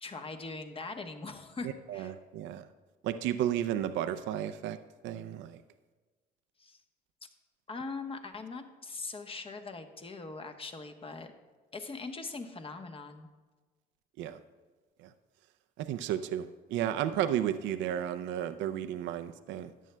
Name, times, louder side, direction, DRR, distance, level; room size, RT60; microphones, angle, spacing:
voice 1, 0.0-2.1 6.6-6.8 7.2-7.3 7.7-11.3 11.7-13.3, left 3 dB, 30° left, 6 dB, 1.0 m, -41 dB
voice 2, 1.6-2.7 3.0-4.8 5.0-5.6 14.2-14.4 15.0-15.1 15.8-19.7, right 11 dB, 70° right, 9 dB, 0.5 m, -33 dB
13.5 x 9.3 x 2.2 m, 1.3 s
supercardioid pair, 70°, 20 cm